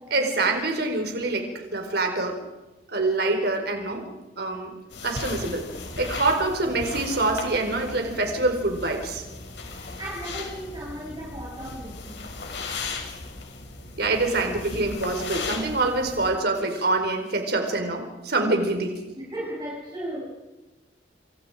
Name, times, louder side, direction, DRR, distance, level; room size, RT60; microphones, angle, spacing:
voice 1, 0.1-2.4 2.9-4.1 4.4-4.7 5.0-5.7 6.0-9.2 14.0-18.9, right 2 dB, 60° right, 4 dB, 4.5 m, -25 dB
sound 1, 4.9-16.3, left 3 dB, 70° left, 6.2 m, -37 dB
voice 2, 9.6-12.3 19.2-20.3, right 1 dB, 25° right, -4 dB, 6.6 m, -36 dB
28.0 x 27.5 x 5.0 m, 1.1 s
head